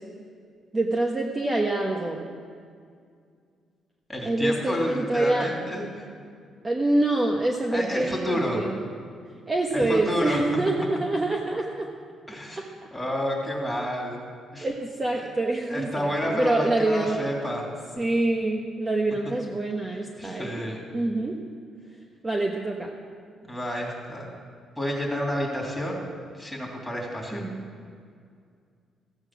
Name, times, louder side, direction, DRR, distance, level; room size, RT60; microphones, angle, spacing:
voice 1, 0.7-2.2 4.2-5.5 6.6-8.8 9.5-11.9 12.6-12.7 14.6-17.2 18.0-20.6 20.9-21.3 22.2-22.9 27.3-27.6, right 2 dB, 25° right, 0 dB, 1.1 m, -26 dB
voice 2, 4.1-6.0 7.7-8.6 9.7-10.4 12.3-12.6 12.9-14.3 14.5-14.7 15.1-15.3 15.7-17.7 20.2-20.9 23.5-24.3 24.8-26.0 26.3-27.4, equal, 5° left, -2 dB, 3.1 m, -30 dB
14.5 x 8.8 x 6.1 m, 2.2 s
cardioid pair, 90°, 0 cm